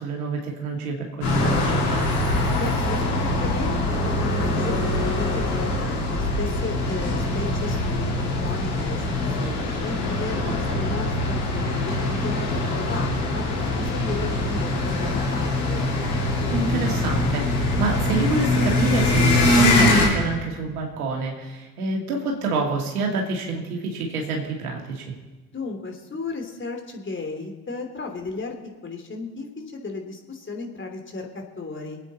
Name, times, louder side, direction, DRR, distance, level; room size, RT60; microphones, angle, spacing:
voice 1, 0.0-2.1 10.7-10.8 16.5-25.1, right 3 dB, 85° right, 0 dB, 2.5 m, -27 dB
sound 1, 1.2-20.1, left 2 dB, 85° left, 3.5 m, -23 dB
voice 2, 2.6-11.9 12.2-15.9 25.5-28.5 28.8-32.0, left 3 dB, 25° left, 3 dB, 2.9 m, -34 dB
25.5 x 9.1 x 4.2 m, 1.2 s
hypercardioid pair, 60°, 43 cm